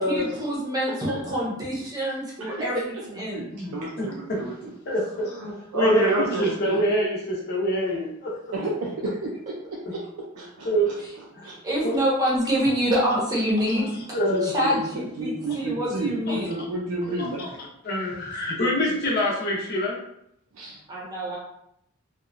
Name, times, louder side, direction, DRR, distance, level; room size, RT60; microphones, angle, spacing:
voice 1, 0.1-3.4 11.4-13.8 14.4-16.5 20.9-21.4, equal, 15° right, -5 dB, 0.7 m, -26 dB
voice 2, 1.1-1.4 2.4-4.7 5.3-6.5 8.5-10.0 10.4-10.7 11.4-11.6 14.3-14.9 15.2-17.5 20.5-20.8, right 2 dB, 80° right, -3 dB, 0.4 m, -30 dB
voice 3, 3.5-4.4 4.9-5.4 5.7-6.1 6.4-8.5 9.8-9.9 10.6-11.0 11.3-11.5 11.8-12.0 13.7-14.5 16.3-16.4 17.2-17.5 17.8-20.0, equal, 45° left, -4 dB, 0.7 m, -26 dB
2.8 x 2.2 x 2.4 m, 0.75 s
head